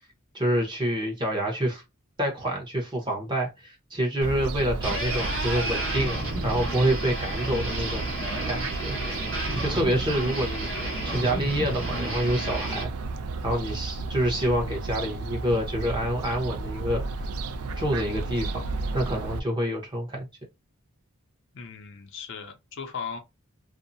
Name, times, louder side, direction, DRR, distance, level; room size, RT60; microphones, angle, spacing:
voice 1, 0.3-1.8 2.2-8.1 8.5-9.0 9.6-10.7 11.0-12.9 13.4-17.2 17.8-18.6 18.9-20.3, right 1 dB, 20° right, 0.8 m, -27 dB
Fowl, 4.2-19.4, right 3 dB, 90° right, 0.4 m, -33 dB
sound 1, 4.8-12.8, right 1 dB, 60° right, 1.2 m, -32 dB
voice 2, 21.5-23.2, left 6 dB, 55° left, 0.5 m, -37 dB
2.6 x 2.0 x 2.6 m
head